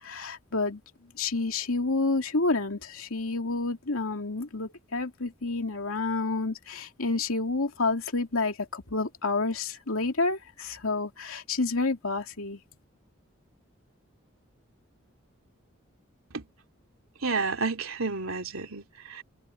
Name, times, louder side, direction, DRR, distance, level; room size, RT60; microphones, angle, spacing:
voice 1, 0.0-0.8 1.2-12.6, left 3 dB, 90° left, 2.5 m, -29 dB
voice 2, 17.2-19.2, right 4 dB, 80° right, 2.8 m, -31 dB
head